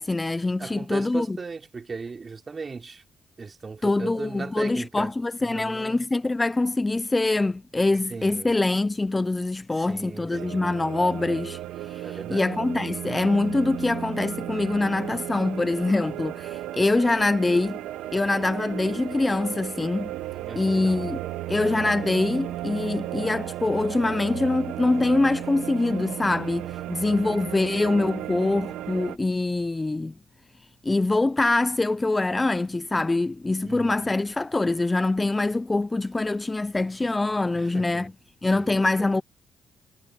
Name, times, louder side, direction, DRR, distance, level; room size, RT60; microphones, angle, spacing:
voice 1, 0.0-1.4 3.8-11.6 11.8-17.8 18.1-20.1 20.6-21.2 21.5-30.1 30.8-38.1 38.4-39.2, left 2 dB, 20° left, 0.4 m, -24 dB
voice 2, 0.6-3.0 3.4-5.1 5.4-6.1 8.1-8.5 9.7-10.6 12.0-12.6 20.4-21.1 33.6-34.1 37.5-38.1 38.5-39.1, right 4 dB, 35° right, 3.1 m, -38 dB
sound 1, 10.3-29.2, right 14 dB, 90° right, 1.1 m, -35 dB
cardioid pair, 90°, 0 cm